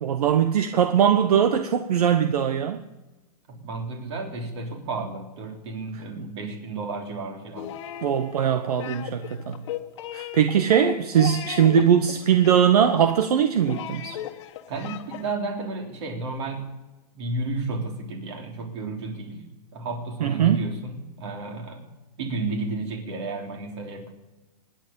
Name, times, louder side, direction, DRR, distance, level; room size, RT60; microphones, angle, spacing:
voice 1, 0.0-2.8 8.0-9.6 10.1-14.2 20.2-20.7, right 8 dB, 70° right, 1.2 m, -21 dB
voice 2, 3.5-7.7 14.7-16.7 17.1-21.9 22.2-24.1, right 3 dB, 45° right, 3.6 m, -32 dB
sound 1, 7.6-15.3, left 11 dB, 45° left, 1.5 m, -37 dB
25.5 x 10.5 x 5.4 m
hypercardioid pair, 175°, 21 cm